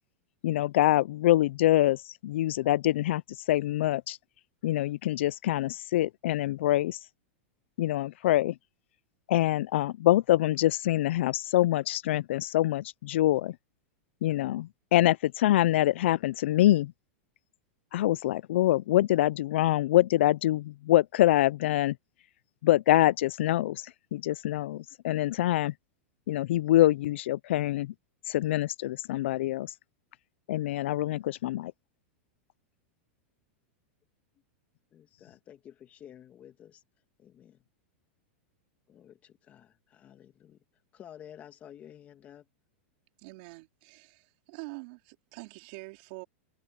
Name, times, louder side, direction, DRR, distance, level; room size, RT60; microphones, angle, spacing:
voice 1, 0.4-3.2 3.5-4.2 4.6-7.0 7.8-8.5 9.3-13.5 14.2-16.9 17.9-21.9 22.6-23.8 24.1-25.7 26.3-27.9 28.3-29.7 30.5-31.7, left 14 dB, 70° left, 0.4 m, -25 dB
voice 2, 34.9-36.8 37.2-37.6 38.9-40.6 40.9-42.5, left 10 dB, 20° left, 2.0 m, -51 dB
voice 3, 43.2-46.2, right 27 dB, 45° right, 4.1 m, -45 dB
supercardioid pair, 165°, 7 cm